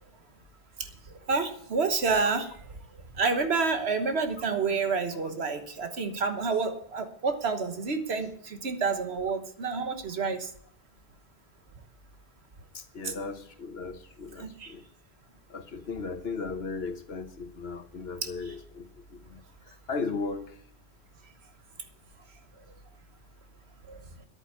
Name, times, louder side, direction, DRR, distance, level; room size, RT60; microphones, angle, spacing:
voice 1, 1.3-2.5 3.2-10.5 13.0-13.1 14.4-14.7 18.2-18.3 23.9-24.0, right 4 dB, 85° right, 8 dB, 1.5 m, -29 dB
voice 2, 12.7-14.8 15.5-19.4 19.9-20.5, left 4 dB, 75° left, 9 dB, 1.4 m, -36 dB
11.0 x 8.9 x 8.3 m, 0.63 s
omnidirectional pair, 1.1 m